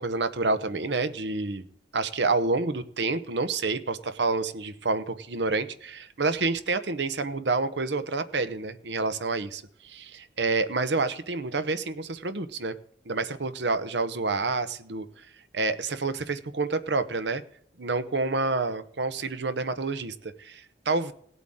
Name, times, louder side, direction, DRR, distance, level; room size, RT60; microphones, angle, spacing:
voice 1, 0.0-1.6 1.9-12.8 13.1-15.1 15.5-17.4 17.8-21.1, right 3 dB, 65° right, 11 dB, 0.9 m, -28 dB
18.0 x 8.2 x 3.7 m, 0.63 s
head